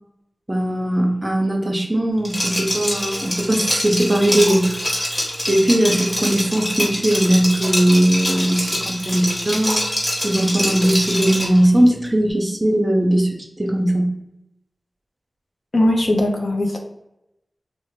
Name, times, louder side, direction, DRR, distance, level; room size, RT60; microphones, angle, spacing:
voice 1, 0.5-4.8 5.5-9.8 10.2-14.1, right 1 dB, 25° right, 1 dB, 0.6 m, -19 dB
Liquid, 2.2-11.6, equal, 20° left, 1.2 m, -24 dB
voice 2, 15.7-16.8, left 1 dB, 60° left, 2 dB, 0.5 m, -19 dB
2.7 x 2.1 x 3.1 m, 0.86 s
wide cardioid pair, 65°, 0 cm